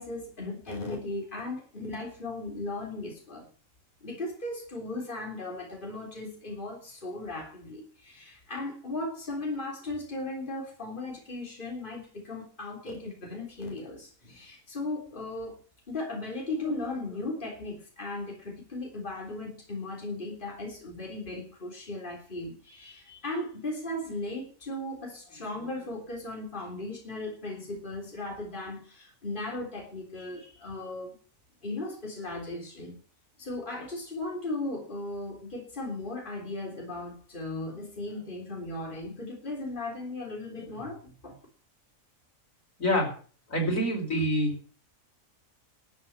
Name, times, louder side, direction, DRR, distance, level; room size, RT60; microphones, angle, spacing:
voice 1, 0.0-3.5 4.0-15.6 15.9-31.1 31.6-33.0 33.4-41.4, left 2 dB, 40° left, 0 dB, 3.7 m, -37 dB
voice 2, 42.8-43.1 43.5-44.5, equal, 80° left, 1 dB, 5.3 m, -26 dB
13.0 x 7.8 x 8.8 m, 0.41 s
omnidirectional pair, 1.4 m